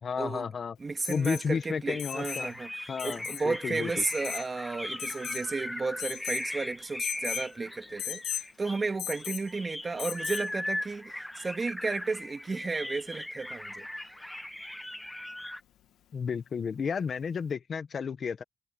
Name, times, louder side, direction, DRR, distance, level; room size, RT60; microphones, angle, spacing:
voice 1, 0.0-0.7 1.1-2.5 2.9-3.9 16.1-18.4, left 6 dB, 45° left, 1.5 m, -32 dB
voice 2, 0.8-13.9, right 4 dB, 30° right, 2.5 m, -33 dB
Alarm, 1.0-1.5 2.0-2.5 3.0-3.4 4.0-4.5 5.0-5.5 6.0-6.5 7.0-7.5 8.0-8.5 9.0-9.5 10.0-10.5 12.2-12.3, left 11 dB, 80° left, 1.6 m, -37 dB
sound 1, 1.9-15.6, left 1 dB, 5° left, 1.2 m, -39 dB
cardioid pair, 90°, 0 cm